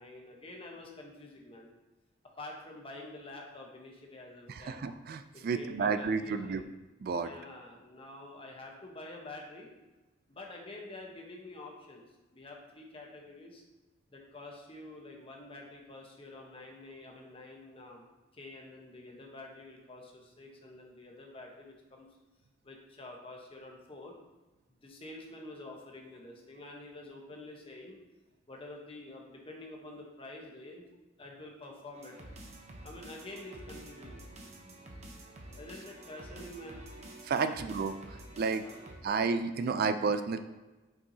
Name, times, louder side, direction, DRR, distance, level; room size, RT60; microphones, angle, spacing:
voice 1, 0.0-1.7 2.4-4.8 5.3-6.7 7.2-9.7 10.3-12.0 12.3-13.6 14.1-18.0 18.3-22.1 22.6-24.2 24.8-28.0 28.5-30.9 31.2-32.3 32.8-34.2 35.6-36.8 37.3-37.7 38.3-38.8, left 2 dB, 30° left, 0 dB, 1.0 m, -48 dB
voice 2, 4.5-6.6 7.0-7.3 37.3-37.9 38.4-38.6 39.0-40.4, right 5 dB, 50° right, 10 dB, 0.3 m, -31 dB
sound 1, 31.9-39.0, right 1 dB, 35° right, 0.8 m, -49 dB
8.6 x 4.5 x 2.8 m, 1.1 s
head